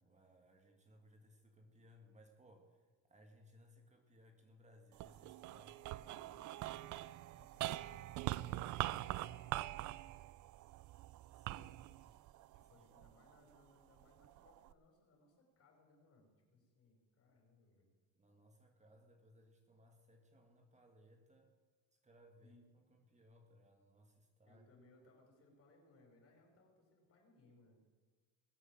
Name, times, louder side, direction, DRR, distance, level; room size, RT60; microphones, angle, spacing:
voice 1, 0.0-6.9 11.3-12.0 12.8-13.0 18.1-21.6 21.9-24.6, equal, 20° right, 4 dB, 1.6 m, -65 dB
sound 1, 4.9-13.4 14.0-14.7, right 16 dB, 60° right, 0.5 m, -44 dB
voice 2, 7.3-9.8 11.5-12.0 12.5-17.9 22.4-22.6 24.4-27.8, left 2 dB, 45° left, 1 dB, 5.5 m, -69 dB
21.0 x 8.0 x 7.7 m, 1.4 s
cardioid pair, 130°, 34 cm